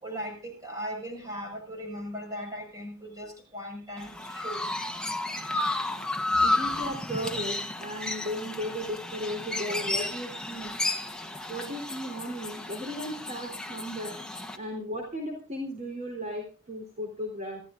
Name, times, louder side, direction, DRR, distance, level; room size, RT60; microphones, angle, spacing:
voice 1, 0.0-4.6 6.4-6.5, equal, 15° right, 1 dB, 5.9 m, -38 dB
Chirp tweet, 4.0-14.6, left 2 dB, 5° left, 1.1 m, -32 dB
voice 2, 6.4-10.8 11.5-14.2 14.5-17.6, equal, 35° right, 0 dB, 3.8 m, -35 dB
26.5 x 14.5 x 2.6 m, 0.35 s
head